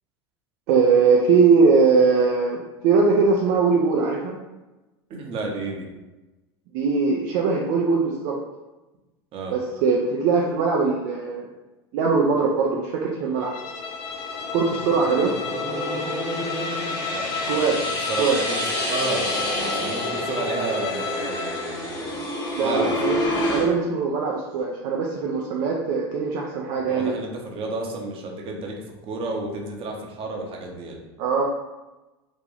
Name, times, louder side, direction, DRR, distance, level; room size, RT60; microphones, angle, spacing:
voice 1, 0.7-4.4 6.7-8.3 9.5-11.5 11.9-13.5 14.5-15.3 17.5-17.9 18.2-18.4 22.6-27.2 31.2-31.4, right 4 dB, 60° right, -2 dB, 0.5 m, -21 dB
voice 2, 5.1-5.9 9.3-9.5 17.1-18.6 18.9-22.2 22.6-23.0 26.9-28.7 29.0-31.0, right 3 dB, 40° right, 0 dB, 0.9 m, -31 dB
Bowed string instrument, 13.4-21.8, left 5 dB, 65° left, 0.6 m, -32 dB
sound 1, 13.6-23.7, left 1 dB, 30° left, 1.1 m, -29 dB
3.0 x 2.8 x 3.8 m, 1.1 s
hypercardioid pair, 85°, 14 cm